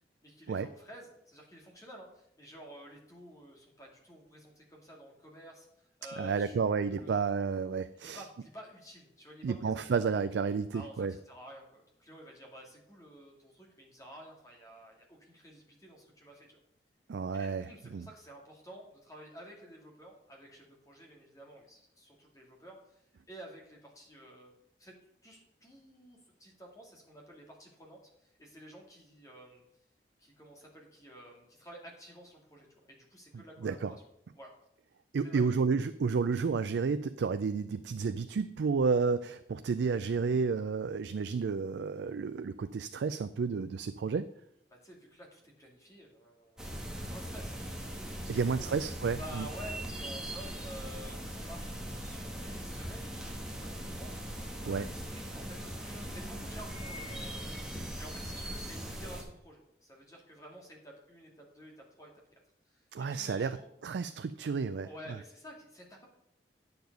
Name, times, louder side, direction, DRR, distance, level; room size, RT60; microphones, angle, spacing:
voice 1, 0.2-7.2 7.9-10.0 10.7-16.6 17.3-24.9 25.2-29.6 30.2-34.0 34.3-34.5 35.2-35.4 44.7-48.8 49.1-54.1 54.6-62.4 62.7-63.7 64.8-66.1, equal, 20° left, -1 dB, 2.2 m, -51 dB
voice 2, 6.2-8.2 9.4-11.1 17.1-18.1 33.3-33.9 35.1-44.3 48.3-49.5 54.7-54.8 62.9-63.6 63.8-64.9, right 5 dB, 75° right, 11 dB, 0.4 m, -31 dB
sound 1, 46.6-59.2, right 1 dB, 5° right, 1.5 m, -40 dB
9.4 x 6.9 x 5.3 m, 0.76 s
head